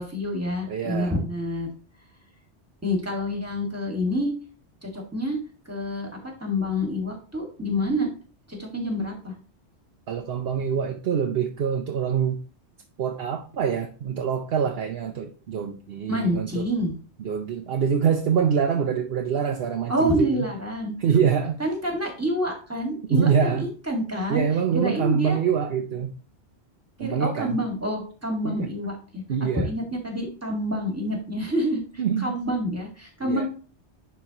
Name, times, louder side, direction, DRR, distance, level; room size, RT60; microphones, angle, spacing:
voice 1, 0.0-1.7 2.8-4.3 4.8-5.4 5.6-6.1 6.4-8.1 8.5-9.3 16.1-16.9 19.9-20.9 21.6-24.4 24.7-25.4 27.0-29.2 29.5-31.8 32.2-33.5, equal, 15° right, 1 dB, 1.8 m, -27 dB
voice 2, 0.6-1.2 10.1-12.4 13.0-16.7 17.2-20.5 21.0-21.6 23.1-23.7 24.3-26.1 27.0-27.6 28.4-28.7 29.3-29.7 32.0-32.4 33.2-33.5, right 7 dB, 65° right, 4 dB, 0.9 m, -25 dB
10.5 x 4.1 x 2.9 m, 0.37 s
omnidirectional pair, 1.1 m